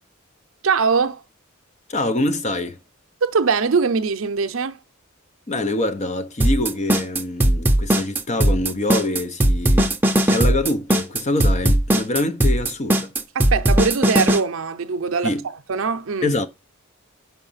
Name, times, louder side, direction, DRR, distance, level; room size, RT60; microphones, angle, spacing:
voice 1, 0.6-1.2 3.2-4.8 13.3-16.3, right 5 dB, 70° right, 0.6 m, -22 dB
voice 2, 1.9-2.8 5.5-10.0 10.2-13.1 15.2-15.4 16.2-16.5, left 2 dB, 35° left, 0.6 m, -25 dB
sound 1, 6.4-14.4, right 1 dB, 10° right, 0.7 m, -18 dB
5.7 x 5.0 x 5.5 m
head